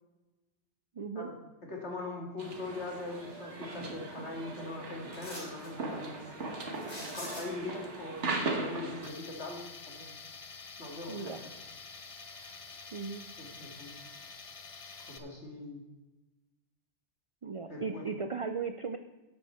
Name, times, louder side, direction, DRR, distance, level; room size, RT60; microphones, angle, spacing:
voice 1, 0.9-1.3 11.1-11.4 12.9-13.2 17.4-19.0, right 5 dB, 50° right, 8 dB, 0.4 m, -37 dB
voice 2, 1.6-6.3 7.0-9.6 9.9-10.1 10.8-11.5 13.4-14.0 15.1-15.8 17.7-18.1, left 2 dB, 70° left, -1 dB, 2.3 m, -41 dB
sound 1, 2.4-9.1, right 3 dB, 75° right, 1.8 m, -38 dB
sound 2, 5.1-5.7 6.7-7.8 10.3-10.4 10.9-11.6 12.0-13.1 13.5-13.6, left 1 dB, 90° left, 4.5 m, -46 dB
Tools, 9.0-15.2, left 5 dB, 35° left, 0.7 m, -48 dB
11.5 x 8.0 x 4.4 m, 1.1 s
omnidirectional pair, 1.2 m